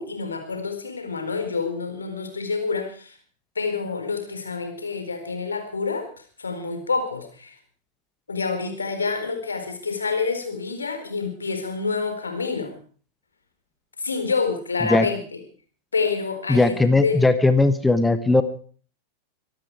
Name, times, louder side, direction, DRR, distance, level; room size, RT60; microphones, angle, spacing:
voice 1, 0.0-3.2 3.6-6.1 6.4-7.6 8.3-12.7 14.0-15.2 15.9-17.2, left 4 dB, 75° left, 6 dB, 4.3 m, -27 dB
voice 2, 16.5-18.4, left 2 dB, 10° left, 11 dB, 1.2 m, -18 dB
24.0 x 12.0 x 4.8 m, 0.43 s
figure-of-eight pair, 90°, 0 cm